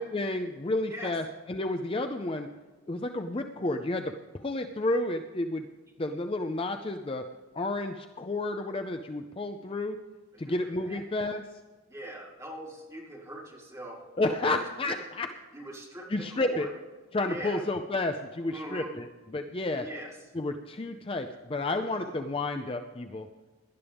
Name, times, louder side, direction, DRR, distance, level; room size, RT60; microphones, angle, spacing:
voice 1, 0.0-2.5 2.9-5.6 6.0-7.2 7.5-10.0 10.4-11.4 14.2-15.3 16.1-16.7 17.1-19.9 20.3-23.3, left 2 dB, 25° left, 6 dB, 0.5 m, -31 dB
voice 2, 11.9-14.0 14.4-14.5 14.9-15.0 15.5-16.7 17.3-17.6 18.5-18.9 19.8-20.1 21.8-22.1, right 1 dB, 15° right, -5 dB, 4.0 m, -41 dB
18.0 x 11.5 x 3.5 m, 1.3 s
head